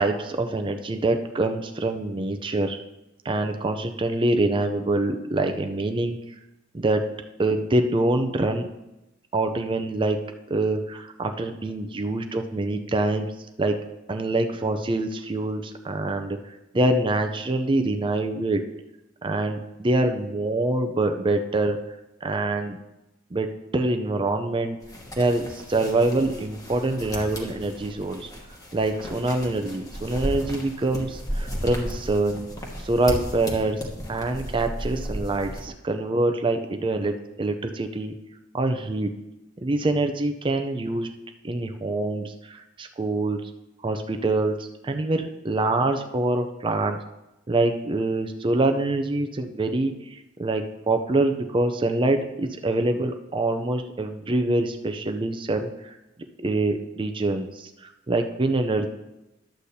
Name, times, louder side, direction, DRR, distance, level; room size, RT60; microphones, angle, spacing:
voice 1, 0.0-2.8 3.2-6.2 6.7-7.0 7.4-8.7 9.3-10.2 10.5-13.3 13.6-13.8 14.1-16.4 16.7-18.6 19.2-21.8 22.2-22.8 23.3-24.8 25.2-28.3 28.7-32.5 32.8-33.8 34.1-38.1 38.5-39.1 39.6-41.1 41.4-43.4 43.8-47.0 47.5-55.9 56.4-58.9, right 2 dB, 25° right, 6 dB, 0.5 m, -25 dB
sound 1, 24.8-35.7, equal, 20° left, 1.2 m, -35 dB
11.5 x 8.2 x 2.7 m, 0.95 s
head